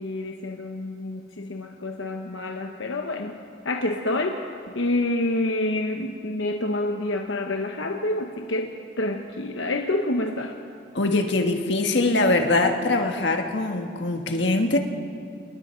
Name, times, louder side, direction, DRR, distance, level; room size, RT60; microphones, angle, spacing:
voice 1, 0.0-3.4 3.6-4.4 4.7-10.6, left 2 dB, 90° left, 4 dB, 1.0 m, -28 dB
voice 2, 10.9-14.8, left 2 dB, 70° left, 4 dB, 1.5 m, -22 dB
27.0 x 21.0 x 4.5 m, 2.3 s
head